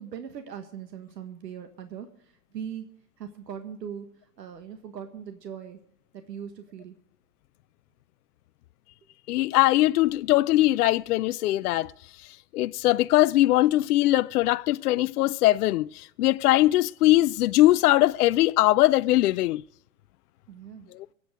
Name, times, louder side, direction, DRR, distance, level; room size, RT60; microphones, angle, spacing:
voice 1, 0.0-2.1 2.5-2.9 3.2-4.1 4.4-5.8 6.1-6.9 20.5-20.9, right 8 dB, 80° right, 1.5 m, -39 dB
voice 2, 9.3-11.9 12.5-19.6 20.9-21.1, left 16 dB, 65° left, 0.5 m, -21 dB
22.0 x 8.4 x 4.9 m
hypercardioid pair, 115°, 49 cm